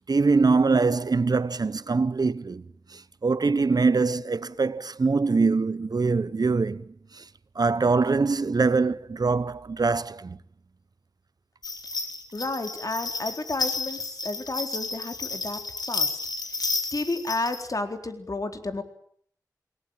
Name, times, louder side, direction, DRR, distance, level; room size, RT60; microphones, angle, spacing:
voice 1, 0.1-2.6 2.9-6.8 7.1-7.2 7.5-10.4, right 4 dB, 75° right, 1.1 m, -23 dB
sound 1, 11.6-17.6, left 3 dB, 80° left, 5.3 m, -32 dB
voice 2, 12.3-15.6 15.9-16.2 16.5-16.6 16.9-18.8, left 2 dB, 60° left, 4.2 m, -31 dB
28.5 x 20.5 x 9.1 m
wide cardioid pair, 65°, 7 cm